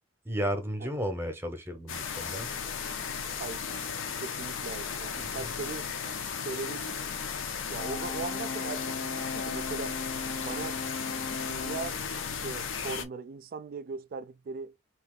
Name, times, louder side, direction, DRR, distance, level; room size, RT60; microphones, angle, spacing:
voice 1, 0.2-2.5 5.2-5.3, equal, 10° right, 0.7 m, -33 dB
sound 1, 1.9-13.0, left 6 dB, 85° left, 0.7 m, -35 dB
voice 2, 4.2-5.9 6.4-6.9 7.7-10.0 10.4-14.7, right 4 dB, 50° right, 0.3 m, -39 dB
Brass instrument, 7.8-12.0, left 3 dB, 40° left, 0.6 m, -38 dB
2.9 x 2.8 x 3.6 m
head